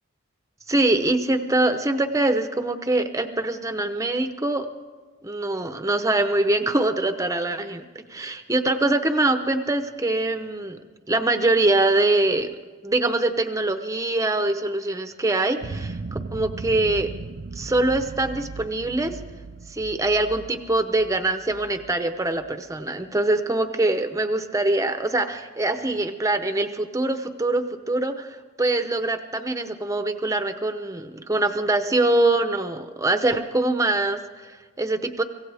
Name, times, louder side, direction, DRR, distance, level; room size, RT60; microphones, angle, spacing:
voice 1, 0.7-4.7 5.2-7.8 8.1-10.8 11.1-12.5 12.8-17.1 17.5-19.2 19.7-35.2, right 2 dB, 15° right, 8 dB, 0.7 m, -23 dB
sound 1, 15.6-22.7, right 3 dB, 45° right, 0.5 m, -37 dB
24.5 x 16.5 x 3.5 m, 1.4 s
head